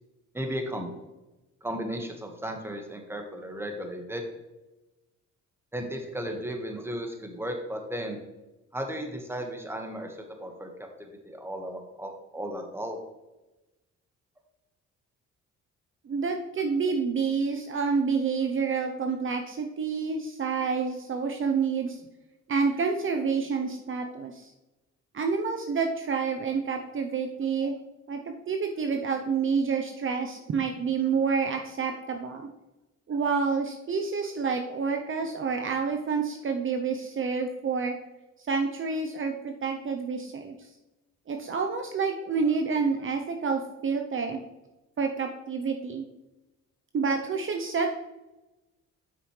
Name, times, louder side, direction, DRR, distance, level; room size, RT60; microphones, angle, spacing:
voice 1, 0.3-0.9 1.6-4.2 5.7-8.2 8.7-13.0, equal, 10° right, 3 dB, 1.5 m, -35 dB
voice 2, 16.0-22.0 22.5-24.5 25.1-27.7 28.1-32.5 33.1-37.9 38.4-40.7 41.3-44.4 45.0-46.1 46.9-47.9, right 5 dB, 45° right, 3 dB, 0.8 m, -28 dB
8.1 x 6.0 x 3.2 m, 1.0 s
cardioid pair, 90°, 30 cm